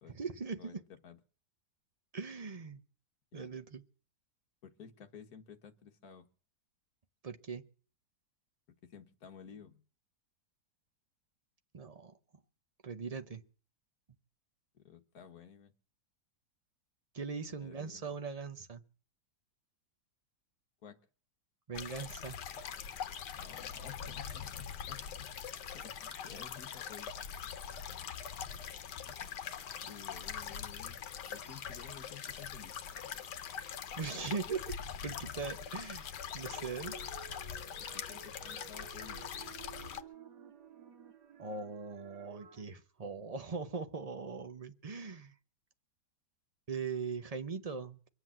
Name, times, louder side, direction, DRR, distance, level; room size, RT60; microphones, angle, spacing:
voice 1, 0.1-0.8 2.1-2.8 3.3-3.8 7.2-7.6 11.7-12.1 12.8-13.4 17.1-18.8 21.7-22.4 34.0-34.8 35.0-36.1 36.3-37.0 41.4-45.3 46.7-48.1, right 5 dB, 35° right, 9 dB, 0.6 m, -40 dB
voice 2, 4.6-6.3 8.8-9.8 14.7-15.7 17.6-18.0 20.8-21.0 23.3-25.3 25.7-27.1 29.1-29.3 29.8-31.0 31.3-32.8 37.8-39.3, left 7 dB, 60° left, 6 dB, 1.7 m, -53 dB
sound 1, 21.7-40.0, left 8 dB, 75° left, 1.6 m, -43 dB
sound 2, 36.4-42.6, right 7 dB, 75° right, 1.7 m, -53 dB
23.5 x 7.9 x 7.5 m, 0.43 s
omnidirectional pair, 1.8 m